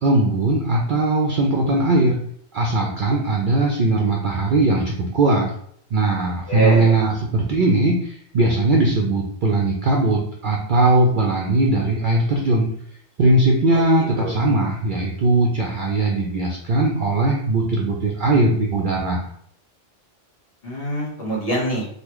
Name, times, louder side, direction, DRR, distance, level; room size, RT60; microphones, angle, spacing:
voice 1, 0.0-2.2 2.5-5.5 5.9-12.7 13.2-19.3, right 2 dB, 60° right, -1 dB, 0.5 m, -19 dB
voice 2, 6.5-7.0 13.7-13.8 14.2-14.3 20.6-21.9, right 1 dB, 50° left, -3 dB, 1.2 m, -24 dB
3.6 x 2.2 x 3.0 m, 0.63 s
omnidirectional pair, 1.3 m